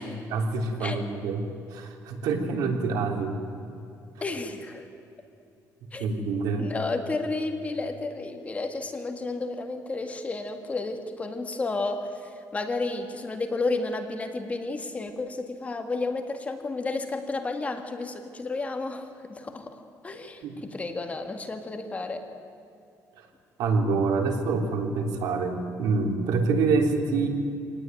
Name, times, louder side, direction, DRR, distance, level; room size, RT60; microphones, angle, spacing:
voice 1, 0.3-1.4 1.7-3.4 5.9-6.7 20.4-20.6 23.2-23.3 23.6-27.3, right 4 dB, 80° right, 3 dB, 3.5 m, -26 dB
voice 2, 4.2-4.9 5.9-6.1 6.6-22.2 24.2-24.4, left 3 dB, 20° left, 5 dB, 2.0 m, -32 dB
25.5 x 19.0 x 9.3 m, 2.6 s
cardioid pair, 140°, 6 cm